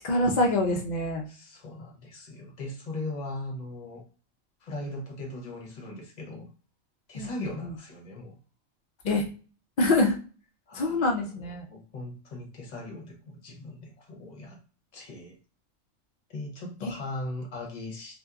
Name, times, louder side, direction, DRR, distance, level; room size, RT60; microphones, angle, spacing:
voice 1, 0.0-1.3 7.1-7.7 9.0-9.2 9.8-10.2 10.7-11.6 16.8-16.9, left 2 dB, 90° left, 1 dB, 0.4 m, -25 dB
voice 2, 1.3-4.0 4.6-6.5 7.1-8.4 10.7-14.6 14.9-15.4 16.3-18.2, left 2 dB, 45° left, 1 dB, 0.6 m, -39 dB
2.7 x 2.2 x 2.3 m, 0.37 s
omnidirectional pair, 1.4 m